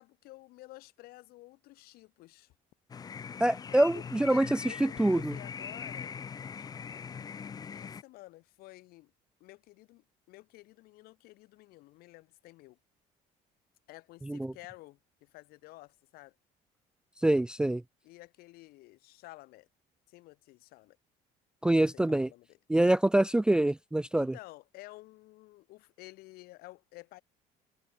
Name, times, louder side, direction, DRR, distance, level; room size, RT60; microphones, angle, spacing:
voice 1, 0.0-2.5 3.7-4.0 4.3-6.1 7.1-9.1 9.4-12.8 13.9-16.3 18.0-19.7 20.1-21.0 21.8-22.6 24.1-27.2, left 19 dB, 70° left, 7.9 m, -52 dB
sound 1, 2.9-8.0, left 6 dB, 25° left, 0.8 m, -41 dB
voice 2, 3.4-4.5 4.8-5.3 14.3-14.5 17.2-17.8 21.6-22.3 22.7-24.3, right 1 dB, 5° right, 0.4 m, -25 dB
cardioid pair, 145°, 16 cm